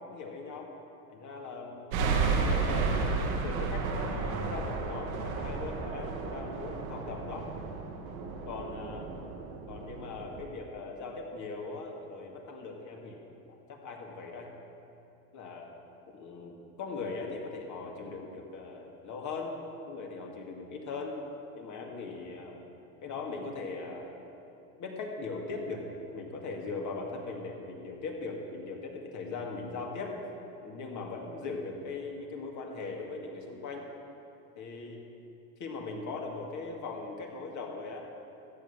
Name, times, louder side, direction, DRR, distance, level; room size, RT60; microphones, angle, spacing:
voice 1, 0.1-0.6 1.1-2.9 3.3-7.5 8.5-9.1 9.7-13.2 13.5-14.5 15.3-15.6 16.1-19.5 19.9-21.2 21.6-22.6 23.0-24.1 24.8-25.9 26.1-30.1 30.6-33.9 34.6-35.0 35.6-38.1, left 4 dB, 45° left, 1 dB, 2.4 m, -39 dB
sound 1, 1.9-10.5, right 4 dB, 85° right, 1.8 m, -32 dB
14.0 x 8.0 x 7.3 m, 2.8 s
supercardioid pair, 110°, 42 cm